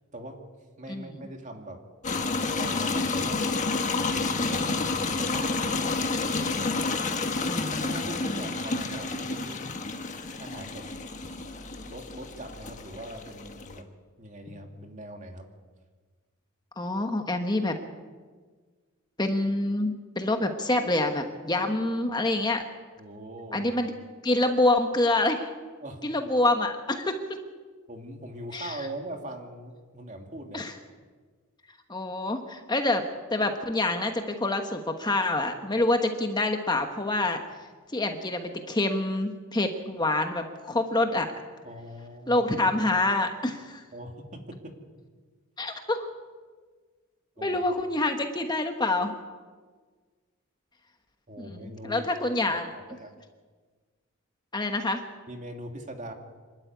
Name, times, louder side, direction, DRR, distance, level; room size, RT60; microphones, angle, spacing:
voice 1, 0.8-1.8 2.5-6.1 7.8-9.8 10.4-10.9 11.8-13.9 14.2-15.5 23.0-23.7 25.8-26.0 27.9-30.7 41.6-42.5 43.9-44.8 47.4-47.6 51.3-52.1 52.6-53.1 55.3-56.1, right 1 dB, 35° right, 3 dB, 2.5 m, -41 dB
sound 1, 2.0-13.8, left 3 dB, 35° left, 1.4 m, -30 dB
voice 2, 7.5-8.4 16.8-17.8 19.2-22.6 23.5-23.9 24.2-25.5 26.0-27.4 28.5-28.8 30.5-30.7 31.9-37.4 37.9-41.3 42.3-43.8 45.6-46.1 47.4-49.1 51.5-52.7 54.5-55.0, left 2 dB, 20° left, 5 dB, 1.2 m, -27 dB
26.0 x 12.5 x 9.4 m, 1.5 s
head